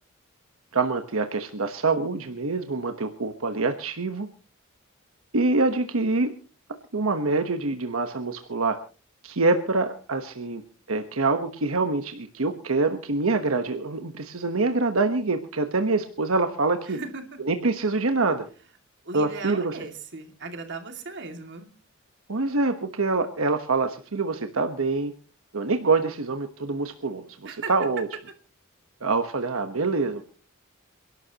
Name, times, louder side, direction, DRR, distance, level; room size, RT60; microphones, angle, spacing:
voice 1, 0.7-4.3 5.3-6.3 6.7-8.8 9.2-10.6 10.9-17.0 17.4-18.5 19.1-19.7 22.3-25.1 25.5-28.1 29.0-30.2, right 3 dB, 85° right, 7 dB, 1.2 m, -25 dB
voice 2, 16.8-17.3 19.0-21.7 27.4-27.7, right 4 dB, 60° right, 5 dB, 2.4 m, -37 dB
28.5 x 12.0 x 2.9 m, 0.36 s
head